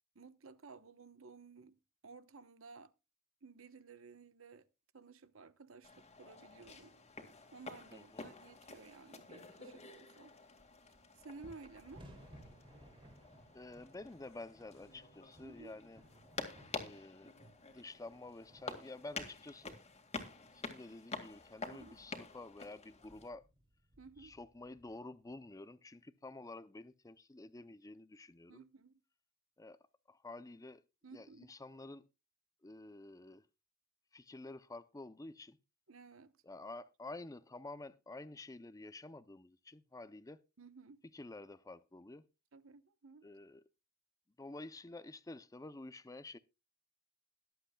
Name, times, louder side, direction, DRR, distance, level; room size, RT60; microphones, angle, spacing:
voice 1, 0.1-2.9 3.4-4.7 4.9-7.0 7.5-10.4 11.2-12.0 15.4-15.7 21.7-22.0 24.0-24.4 28.5-29.0 31.0-31.5 35.9-36.3 40.6-41.0 42.5-43.3, right 4 dB, 75° right, 1.0 m, -55 dB
sound 1, 5.8-23.3, left 3 dB, 30° left, 2.0 m, -49 dB
voice 2, 7.9-8.3 13.5-16.0 16.7-17.3 17.7-19.8 20.5-23.5 24.2-28.6 29.6-29.8 30.1-30.8 31.1-32.1 32.6-33.5 34.1-35.6 36.4-40.4 41.1-42.2 43.2-43.6 44.4-46.4, left 2 dB, 15° left, 0.5 m, -50 dB
sound 2, 10.7-10.8 11.0-25.3, right 1 dB, 25° right, 2.9 m, -62 dB
22.0 x 7.9 x 2.3 m
head